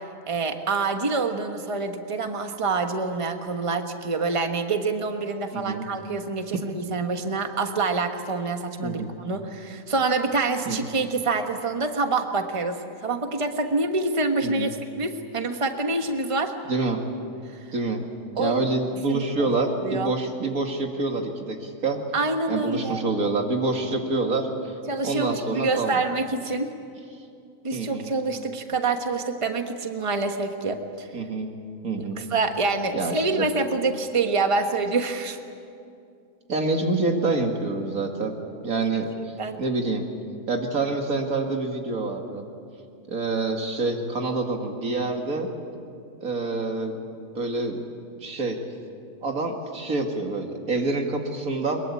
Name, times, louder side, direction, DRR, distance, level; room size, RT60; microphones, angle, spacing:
voice 1, 0.3-16.5 17.5-17.7 18.4-18.5 19.1-20.1 22.1-23.0 24.9-26.7 27.6-31.1 32.2-35.4 38.7-38.9 39.4-39.6, right 3 dB, 25° right, 5 dB, 1.3 m, -26 dB
voice 2, 5.5-5.9 8.8-9.1 10.7-10.8 14.4-14.7 16.7-17.0 17.7-18.0 18.4-22.0 22.5-24.7 25.0-26.0 27.7-28.1 31.1-31.5 31.8-32.2 32.9-33.5 36.5-38.3 38.6-40.1 40.5-42.4 43.1-45.5 46.2-47.0 47.3-47.8 48.2-48.6 49.2-51.8, right 3 dB, 85° right, 3 dB, 2.6 m, -27 dB
22.5 x 22.0 x 8.6 m, 2.4 s
omnidirectional pair, 1.5 m